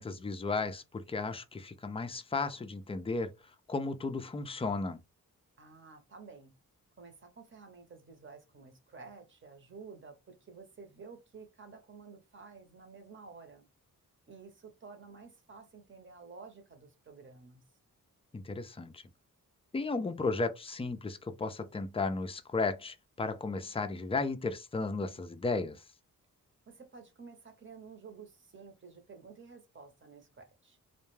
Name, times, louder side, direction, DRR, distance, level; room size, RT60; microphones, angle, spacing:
voice 1, 0.0-3.3 3.7-5.0 18.3-19.0 19.7-25.8, left 3 dB, 15° left, 0.4 m, -34 dB
voice 2, 5.6-6.5 7.0-13.7 14.3-17.6 26.7-30.8, right 4 dB, 35° right, 0.8 m, -52 dB
2.2 x 2.2 x 3.1 m
wide cardioid pair, 95°, 34 cm